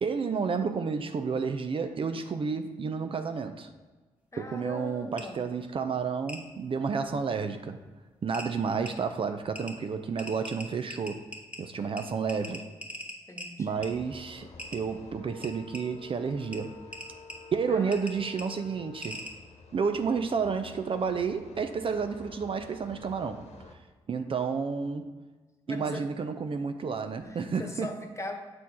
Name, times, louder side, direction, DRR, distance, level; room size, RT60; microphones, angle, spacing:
voice 1, 0.0-3.7 4.4-7.8 8.2-11.2 11.6-12.6 13.6-16.8 17.5-19.2 19.7-23.5 24.1-25.1 25.7-27.9, right 5 dB, 45° right, 8 dB, 0.5 m, -31 dB
voice 2, 4.3-5.4 11.8-11.9 13.3-13.8 17.7-18.0 25.7-26.1 27.2-28.3, left 1 dB, 25° left, 4 dB, 1.3 m, -41 dB
sound 1, 5.2-5.3 6.3-6.4 7.8-7.9 8.3-8.5 8.9-9.0 9.5-9.7 10.2-11.6 12.0-12.1 12.3-13.5 13.8-13.9 14.6-14.8 15.4-15.8 16.5-16.6 16.9-17.3 17.9-18.1 18.4-18.5 19.0-19.3, left 1 dB, 10° right, 1.6 m, -40 dB
sound 2, 13.7-23.7, left 4 dB, 60° left, 1.1 m, -50 dB
6.8 x 4.2 x 4.3 m, 1.3 s
hypercardioid pair, 40°, 13 cm